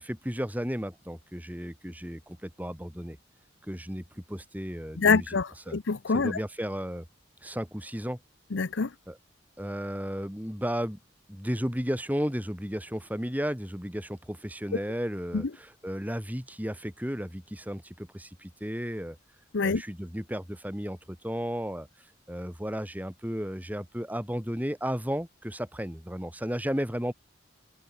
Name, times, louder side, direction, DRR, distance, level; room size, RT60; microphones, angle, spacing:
voice 1, 0.0-3.2 3.6-5.4 5.7-5.8 6.1-7.1 7.4-8.2 9.1-9.2 9.6-11.0 11.3-19.2 19.6-21.9 22.3-27.1, equal, 10° right, 5.0 m, -34 dB
voice 2, 5.0-6.4 8.5-8.9 15.3-15.4 19.5-19.8, left 4 dB, 75° left, 0.7 m, -25 dB
head